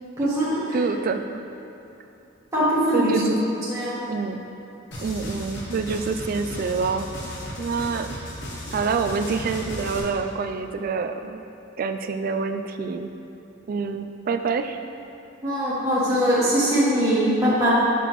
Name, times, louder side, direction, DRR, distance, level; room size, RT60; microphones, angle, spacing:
voice 1, 0.2-0.6 2.5-3.2 3.7-3.9 15.4-17.7, equal, 15° right, -11 dB, 1.2 m, -21 dB
voice 2, 0.7-1.4 2.9-3.4 4.1-4.4 5.0-7.1 7.6-8.1 8.7-11.4 11.8-13.1 13.7-14.8, right 5 dB, 45° right, 7 dB, 0.3 m, -26 dB
sound 1, 4.9-10.0, left 1 dB, 60° left, 1.1 m, -35 dB
6.8 x 5.9 x 3.1 m, 3.0 s
head